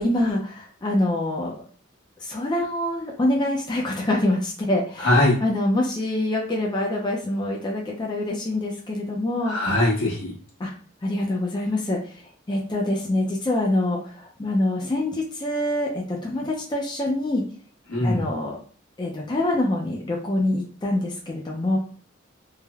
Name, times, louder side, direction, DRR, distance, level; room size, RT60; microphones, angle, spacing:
voice 1, 0.0-1.6 2.2-5.1 5.4-9.6 10.6-10.7 11.0-12.0 12.5-17.4 18.0-18.6 19.0-21.8, left 1 dB, 20° left, -1 dB, 0.4 m, -25 dB
voice 2, 5.0-5.4 9.5-10.3 17.9-18.3, left 1 dB, 85° left, -3 dB, 1.2 m, -21 dB
3.2 x 2.1 x 2.3 m, 0.43 s
head